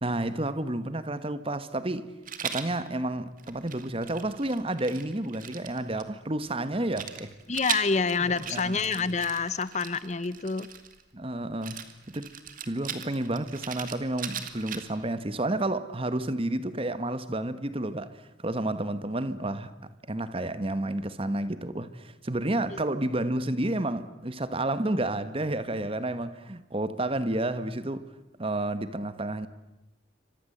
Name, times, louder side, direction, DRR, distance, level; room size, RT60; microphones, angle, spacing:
voice 1, 0.0-2.1 2.4-7.3 8.1-9.2 11.1-11.8 12.1-12.3 12.7-19.7 20.1-28.1 28.4-29.5, right 1 dB, 30° right, 1.3 m, -30 dB
Rattle, 2.3-2.7 3.4-6.0 6.9-11.0 11.6-15.1, right 8 dB, 45° right, 2.3 m, -38 dB
voice 2, 7.5-10.7, left 4 dB, 35° left, 0.9 m, -27 dB
28.5 x 25.5 x 7.9 m
head